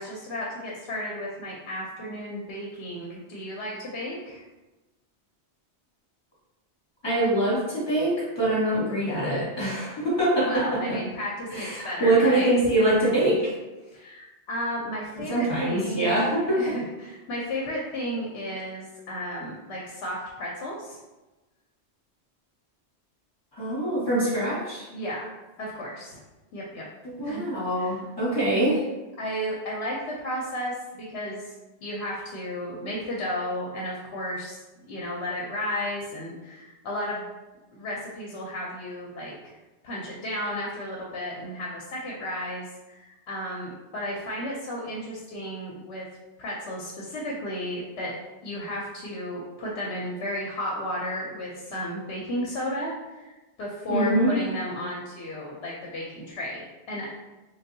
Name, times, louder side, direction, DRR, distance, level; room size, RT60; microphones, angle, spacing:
voice 1, 0.0-4.4 10.5-12.7 13.9-16.2 16.6-21.0 24.9-25.2 25.6-26.2 26.5-26.8 27.2-27.5 27.8-27.9 29.2-31.5 31.8-34.6 34.9-37.3 37.7-39.5 39.8-46.1 46.4-48.1 48.4-57.1, equal, 70° left, -3 dB, 0.9 m, -33 dB
voice 2, 7.0-11.0 11.5-13.5 15.3-16.8 23.5-24.8 27.0-28.8 53.9-54.3, right 1 dB, 25° left, -8 dB, 1.3 m, -24 dB
3.5 x 2.6 x 2.6 m, 1.1 s
omnidirectional pair, 1.1 m